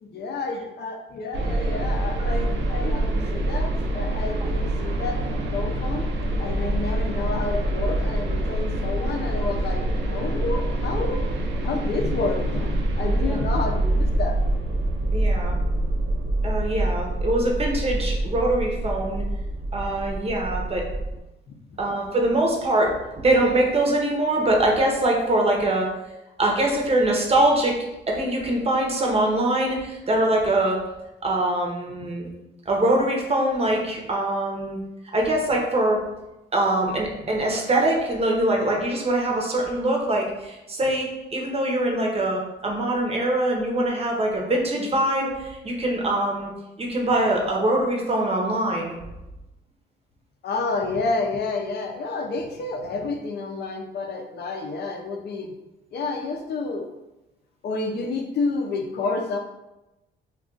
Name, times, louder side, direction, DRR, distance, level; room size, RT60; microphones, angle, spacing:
voice 1, 0.0-5.2 5.5-6.0 6.4-11.2 11.6-14.4 50.4-55.5 55.9-56.9 57.6-59.4, left 3 dB, 55° left, 4 dB, 0.5 m, -29 dB
sound 1, 1.3-21.2, right 1 dB, 65° right, 0.6 m, -25 dB
voice 2, 15.1-15.6 16.4-19.2 19.7-20.8 21.8-25.9 26.4-27.8 28.1-30.8 31.2-32.3 32.7-34.8 35.1-36.0 36.5-46.5 46.8-49.0, right 1 dB, 30° right, 0 dB, 0.7 m, -23 dB
2.4 x 2.3 x 3.7 m, 0.98 s
cardioid pair, 90°, 20 cm